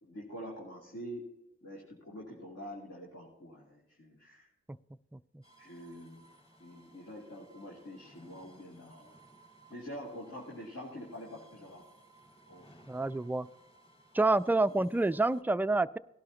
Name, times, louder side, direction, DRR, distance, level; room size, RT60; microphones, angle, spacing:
voice 1, 0.0-1.3 1.6-4.5 5.6-6.3 6.6-9.2 9.7-11.8 12.5-12.7, equal, 60° left, -4 dB, 2.6 m, -46 dB
voice 2, 5.1-5.4 12.9-13.5 14.1-16.0, right 2 dB, 5° right, 14 dB, 0.3 m, -28 dB
sound 1, 5.4-15.4, right 2 dB, 20° left, 2.8 m, -60 dB
17.0 x 11.5 x 2.9 m, 0.93 s
supercardioid pair, 40°, 29 cm